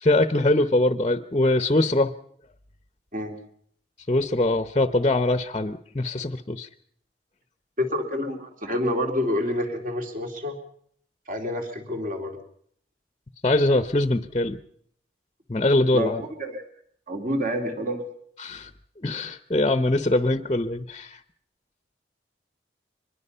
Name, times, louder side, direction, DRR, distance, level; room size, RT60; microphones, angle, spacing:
voice 1, 0.0-2.1 4.1-6.7 13.4-14.6 15.5-16.2 18.4-18.7 19.0-21.2, left 2 dB, 30° left, 10 dB, 0.8 m, -22 dB
voice 2, 7.8-10.6 11.3-12.4 15.9-16.1 16.4-16.6 17.1-18.0, equal, 50° right, 3 dB, 3.1 m, -28 dB
24.0 x 21.0 x 5.6 m, 0.65 s
head